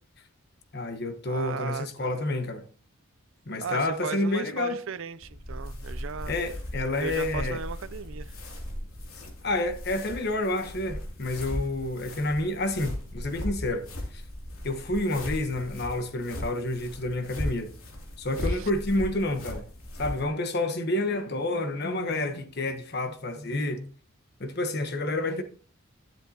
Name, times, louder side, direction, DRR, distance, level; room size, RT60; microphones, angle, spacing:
voice 1, 0.7-2.6 3.5-4.8 6.3-7.6 9.1-13.9 14.1-14.2 14.6-17.7 18.2-19.6 20.0-23.9 24.4-25.4, left 2 dB, 50° left, 1.1 m, -29 dB
voice 2, 1.3-2.2 3.6-6.3 7.0-8.4 18.4-18.7, right 6 dB, 65° right, 0.5 m, -37 dB
sound 1, 5.2-20.2, left 1 dB, 85° left, 2.8 m, -37 dB
11.0 x 7.4 x 2.8 m
head